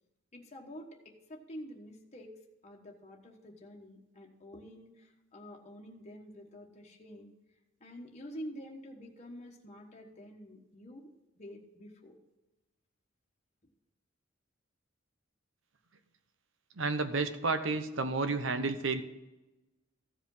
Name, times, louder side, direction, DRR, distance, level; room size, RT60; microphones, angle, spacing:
voice 1, 0.3-2.3 2.6-7.3 7.8-11.1 11.4-12.2, equal, 35° left, 0 dB, 1.3 m, -48 dB
voice 2, 16.8-19.0, right 3 dB, 70° right, 9 dB, 1.0 m, -31 dB
15.0 x 5.1 x 5.5 m, 1.0 s
head